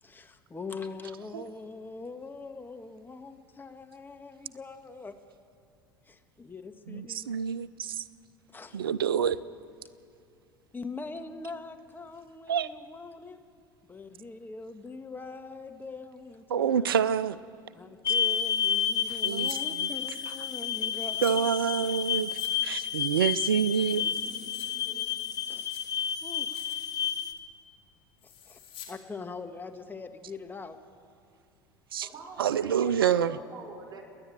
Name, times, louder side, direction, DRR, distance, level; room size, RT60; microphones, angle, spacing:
voice 1, 0.0-5.2 6.1-7.3 8.5-8.9 10.7-13.4 13.9-17.1 17.7-21.3 25.5-25.7 26.2-26.7 28.5-28.6 28.9-30.8, left 3 dB, 15° left, 7 dB, 1.7 m, -42 dB
voice 2, 6.9-8.0 8.7-9.4 12.5-12.7 16.5-17.4 19.2-19.9 21.2-22.3 22.6-24.0 31.9-32.1 32.4-33.3, right 8 dB, 90° right, 17 dB, 0.5 m, -27 dB
sound 1, 18.1-27.3, left 9 dB, 35° left, 1.3 m, -30 dB
sound 2, 19.1-19.6 19.9-21.3 21.9-22.5 22.8-22.9 23.4-24.7 25.0-26.0 26.4-26.9 27.2-27.5 28.2-28.9 29.2-29.3, left 10 dB, 50° left, 3.4 m, -50 dB
voice 3, 21.3-22.3 23.9-25.1 32.0-34.0, right 3 dB, 35° right, 0 dB, 6.0 m, -47 dB
29.0 x 10.5 x 9.2 m, 2.5 s
hypercardioid pair, 80°, 12 cm